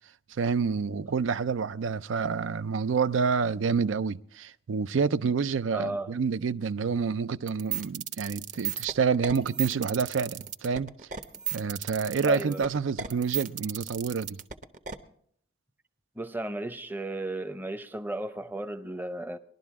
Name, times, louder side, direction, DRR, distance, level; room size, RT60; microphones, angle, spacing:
voice 1, 0.4-10.9 11.5-14.4, right 5 dB, 75° right, 0.4 m, -28 dB
voice 2, 5.7-6.1 12.3-12.6 16.2-19.4, right 1 dB, 10° right, 0.6 m, -34 dB
sound 1, 7.5-15.0, right 9 dB, 40° right, 0.9 m, -34 dB
20.5 x 12.0 x 3.6 m
head